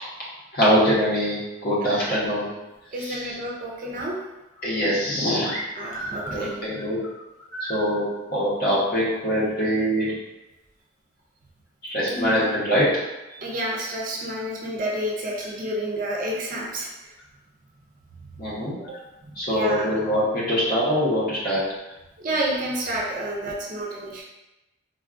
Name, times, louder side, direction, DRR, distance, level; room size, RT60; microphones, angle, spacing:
voice 1, 0.5-2.5 3.0-3.3 4.6-5.6 6.3-7.0 7.7-10.1 11.8-12.9 18.4-18.7 19.4-21.6, equal, 45° left, -7 dB, 1.0 m, -23 dB
voice 2, 1.8-2.2 2.9-4.3 5.8-6.6 12.1-12.5 13.3-16.9 18.9-19.0 19.2-19.9 22.2-24.2, right 1 dB, 40° right, -3 dB, 0.5 m, -30 dB
sound 1, 5.4-7.9, right 1 dB, 80° left, 1.0 m, -35 dB
3.5 x 2.3 x 2.4 m, 1.0 s
head